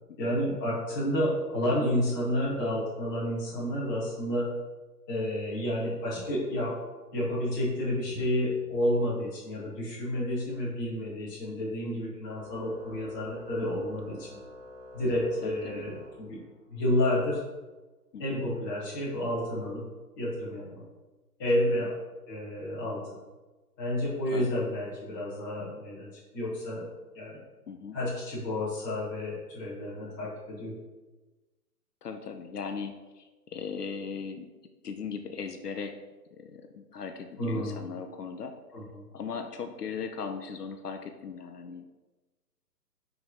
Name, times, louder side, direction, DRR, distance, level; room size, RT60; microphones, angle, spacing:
voice 1, 0.2-4.5 5.1-6.7 7.1-14.3 14.9-16.4 16.7-17.4 18.2-19.8 20.1-20.8 21.4-21.9 22.3-23.0 23.8-26.8 27.1-27.4 27.9-30.7 37.4-37.8 38.7-39.0, equal, 10° left, -10 dB, 1.6 m, -30 dB
Organ, 12.3-16.8, left 1 dB, 20° right, 0.9 m, -48 dB
voice 2, 15.4-15.9 18.1-18.4 21.8-21.9 24.3-24.5 27.7-28.0 32.0-34.5 34.8-36.0 36.3-38.5 39.1-41.9, left 6 dB, 70° left, 6 dB, 0.8 m, -38 dB
5.2 x 4.7 x 5.5 m, 1.2 s
hypercardioid pair, 170°, 49 cm